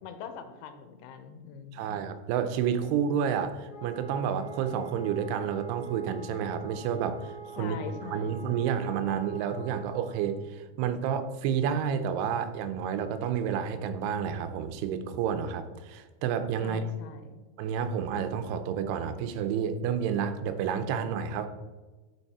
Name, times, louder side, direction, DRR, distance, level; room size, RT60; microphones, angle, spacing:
voice 1, 0.0-2.0 7.6-8.4 16.6-17.4, left 6 dB, 90° left, 8 dB, 2.7 m, -42 dB
voice 2, 1.7-7.8 8.0-16.9 17.6-21.5, right 7 dB, 90° right, 9 dB, 2.7 m, -30 dB
Wind instrument woodwind instrument, 3.7-10.3, right 6 dB, 70° left, 0.9 m, -45 dB
6.9 x 6.2 x 4.7 m, 1.3 s
omnidirectional pair, 4.6 m